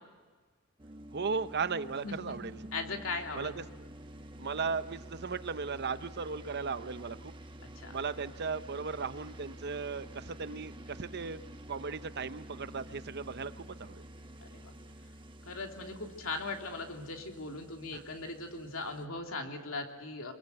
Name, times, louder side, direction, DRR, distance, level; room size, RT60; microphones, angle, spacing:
sound 1, 0.8-19.0, right 1 dB, 20° right, 1.2 m, -49 dB
voice 1, 1.1-2.6 3.4-3.9 4.4-7.3 7.9-11.4 11.7-14.0 17.9-18.0, right 5 dB, 50° right, 12 dB, 0.8 m, -36 dB
voice 2, 2.0-2.4 2.7-3.5 7.6-7.9 14.4-14.7 15.5-20.3, left 3 dB, 65° left, 3 dB, 3.0 m, -39 dB
26.0 x 22.0 x 8.0 m, 1.4 s
head